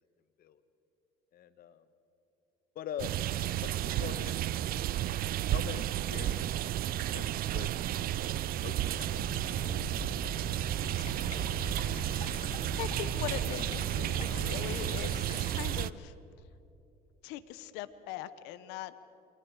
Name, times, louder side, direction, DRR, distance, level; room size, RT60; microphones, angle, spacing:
voice 1, 1.3-1.8 2.7-3.1 3.6-4.5 5.3-6.5 7.1-9.7, left 9 dB, 60° left, 11 dB, 1.4 m, -44 dB
sound 1, 3.0-15.9, right 12 dB, 60° right, 0.6 m, -32 dB
sound 2, 8.8-15.2, equal, 20° right, 5.8 m, -42 dB
sound 3, 10.8-15.8, left 6 dB, 40° left, 1.6 m, -50 dB
voice 2, 11.1-11.5 12.7-16.1 17.2-18.9, left 12 dB, 85° left, 14 dB, 0.9 m, -41 dB
28.5 x 24.0 x 4.8 m, 2.8 s
supercardioid pair, 90°, 17 cm